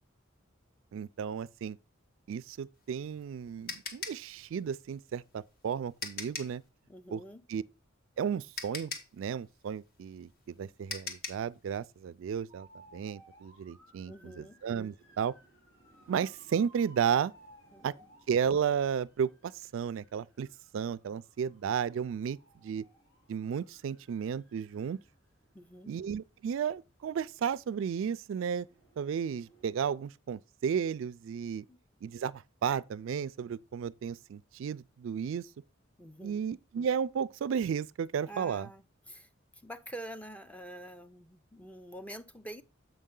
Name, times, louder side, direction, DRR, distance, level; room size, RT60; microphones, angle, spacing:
voice 1, 0.9-1.8 2.3-6.6 7.1-7.2 7.5-7.6 8.2-8.9 9.2-12.7 12.9-15.3 16.1-17.3 17.8-17.9 18.3-20.5 20.7-22.4 22.6-22.8 23.3-25.0 25.9-28.7 29.0-31.6 32.0-35.5 36.2-38.7, right 7 dB, 65° right, 0.3 m, -33 dB
sound 1, 2.8-6.6 8.0-8.1 8.6-11.5, left 4 dB, 50° left, 1.4 m, -41 dB
voice 2, 6.9-7.5 14.1-14.6 17.7-18.1 25.5-26.0 31.7-31.8 36.0-36.4 38.3-42.6, right 1 dB, 5° left, 0.5 m, -47 dB
sound 2, 12.5-29.7, right 1 dB, 80° left, 2.6 m, -62 dB
7.8 x 5.5 x 3.7 m
head